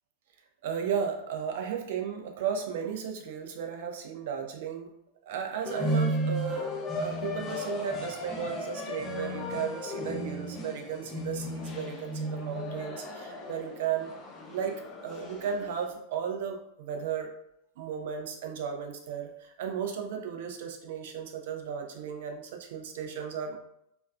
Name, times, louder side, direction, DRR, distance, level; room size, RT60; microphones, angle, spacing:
voice 1, 0.6-4.9 5.3-14.1 14.5-14.7 15.0-17.3 17.8-23.6, right 7 dB, 55° right, 3 dB, 0.4 m, -35 dB
sound 1, 5.7-15.9, equal, 20° left, 0.6 m, -34 dB
3.0 x 2.4 x 2.4 m, 0.77 s
figure-of-eight pair, 90°, 0 cm